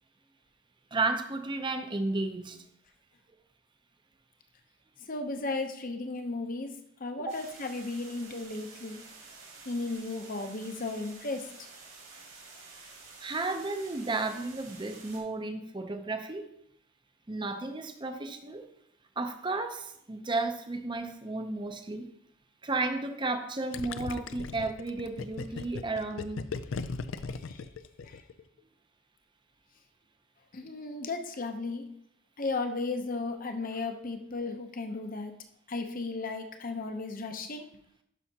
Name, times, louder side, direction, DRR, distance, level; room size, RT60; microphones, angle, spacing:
voice 1, 0.9-2.6 7.3-7.4 13.2-16.5 17.3-18.7 19.2-22.1 22.6-26.4, right 3 dB, 20° right, 7 dB, 0.6 m, -33 dB
voice 2, 5.1-9.0 9.7-11.5 27.3-27.6 28.0-28.2 30.5-31.9 32.4-35.3 35.7-37.7, left 3 dB, 40° left, 6 dB, 0.7 m, -35 dB
sound 1, 7.3-15.2, right 4 dB, 65° right, 2.5 m, -50 dB
Gurgling, 23.7-28.4, left 4 dB, 65° left, 0.4 m, -37 dB
11.5 x 5.6 x 2.8 m, 0.73 s
head